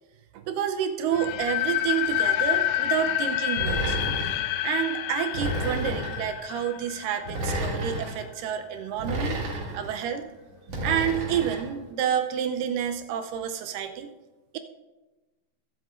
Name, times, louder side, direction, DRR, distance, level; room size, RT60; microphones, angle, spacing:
voice 1, 0.3-4.0 4.6-9.4 9.7-10.3 10.8-14.1, right 9 dB, 80° right, 7 dB, 2.3 m, -29 dB
sound 1, 1.1-8.0, left 12 dB, 80° left, 2.3 m, -28 dB
sound 2, 3.6-4.4 5.3-6.3 7.3-8.1 9.0-9.9 10.7-11.7, right 1 dB, 50° right, 3.0 m, -30 dB
22.0 x 7.8 x 2.5 m, 1.2 s
omnidirectional pair, 3.9 m